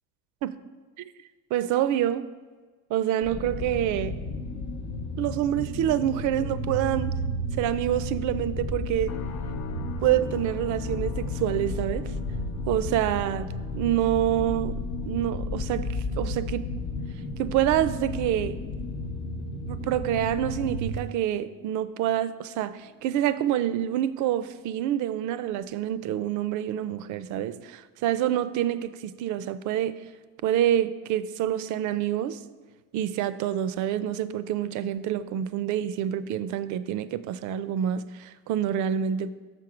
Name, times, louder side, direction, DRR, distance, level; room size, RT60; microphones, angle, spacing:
voice 1, 1.5-2.3 2.9-4.2 5.2-7.2 7.5-9.1 10.0-12.1 12.7-16.7 17.4-18.6 19.7-30.0 30.4-32.4 32.9-39.3, right 11 dB, 60° right, 0.4 m, -27 dB
sound 1, 3.2-21.0, left 1 dB, 90° left, 1.1 m, -33 dB
sound 2, 9.1-24.3 24.6-25.0 25.5-25.7, left 10 dB, 50° left, 0.6 m, -47 dB
6.4 x 5.9 x 4.9 m
cardioid pair, 130°, 34 cm